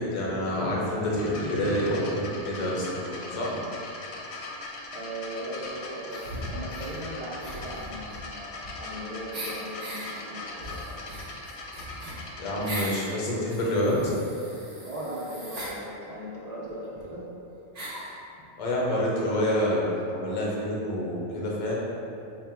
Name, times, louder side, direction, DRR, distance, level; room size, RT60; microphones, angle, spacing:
voice 1, 0.0-3.6 12.4-14.1 18.6-21.7, left 1 dB, 40° left, -4 dB, 0.6 m, -27 dB
sound 1, 1.2-12.9 13.8-13.9, left 2 dB, 70° left, 0.8 m, -40 dB
voice 2, 4.9-11.0 14.8-17.3, right 1 dB, 65° right, -6 dB, 0.3 m, -38 dB
sound 2, 6.1-6.9 7.4-9.0 9.3-10.1 10.6-13.1 13.5-15.8 16.7-16.8 17.0-17.1 17.7-18.1, right 1 dB, 40° right, 0.8 m, -39 dB
3.7 x 2.2 x 4.3 m, 2.8 s
omnidirectional pair, 1.2 m